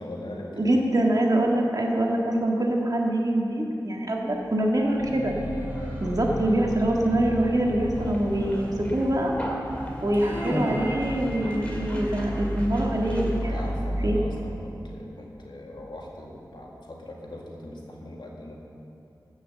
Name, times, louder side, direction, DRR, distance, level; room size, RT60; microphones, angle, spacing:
voice 1, 0.0-0.7 13.4-18.5, left 1 dB, 90° left, -2 dB, 1.9 m, -40 dB
voice 2, 0.6-5.3 6.0-9.3 10.0-13.7 14.0-14.2, right 1 dB, 50° right, -1 dB, 1.7 m, -24 dB
Conversation, 4.3-13.8, equal, 15° left, 2.1 m, -36 dB
sound 1, 5.0-14.2, equal, 25° right, 1.5 m, -34 dB
13.5 x 6.4 x 7.9 m, 2.7 s
wide cardioid pair, 70°, 8 cm